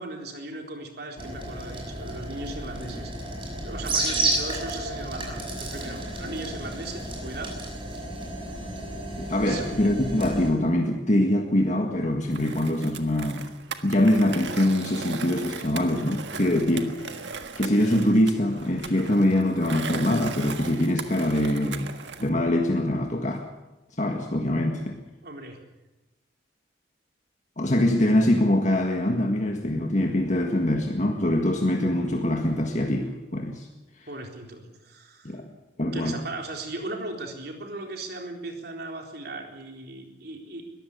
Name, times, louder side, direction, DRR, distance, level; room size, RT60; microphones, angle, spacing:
voice 1, 0.0-3.1 3.5-7.6 9.5-9.7 25.2-25.6 34.1-35.4 35.9-40.6, right 2 dB, 60° right, 2 dB, 4.0 m, -37 dB
sound 1, 1.2-10.5, right 2 dB, 30° right, 6.1 m, -32 dB
voice 2, 9.2-13.5 13.8-17.2 17.6-21.9 22.2-23.5 24.0-25.0 27.6-33.7 35.3-35.4 35.8-36.2, left 1 dB, 40° left, 3 dB, 1.8 m, -24 dB
Skateboard, 12.3-22.3, right 5 dB, 75° right, 1.6 m, -38 dB
21.5 x 15.0 x 8.2 m, 1.1 s
head